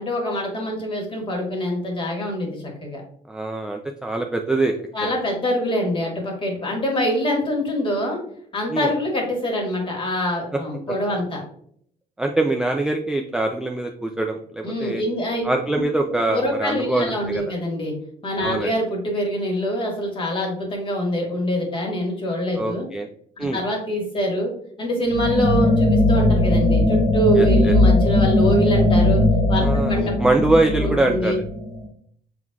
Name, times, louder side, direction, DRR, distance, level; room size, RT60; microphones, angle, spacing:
voice 1, 0.0-3.0 4.9-8.2 8.5-11.4 14.6-15.4 16.3-17.9 18.2-22.9 23.4-24.5 24.8-29.2 29.5-30.2 30.8-31.4, equal, 30° left, 0 dB, 1.7 m, -24 dB
voice 2, 3.3-4.8 5.0-5.2 8.7-8.9 12.2-15.0 15.4-17.4 18.4-18.7 22.5-23.1 23.4-23.6 27.4-27.7 29.6-31.4, right 2 dB, 5° right, 3 dB, 0.3 m, -23 dB
sound 1, 25.1-31.9, left 1 dB, 70° left, 1.9 m, -18 dB
6.1 x 3.7 x 2.3 m, 0.64 s
cardioid pair, 110°, 17 cm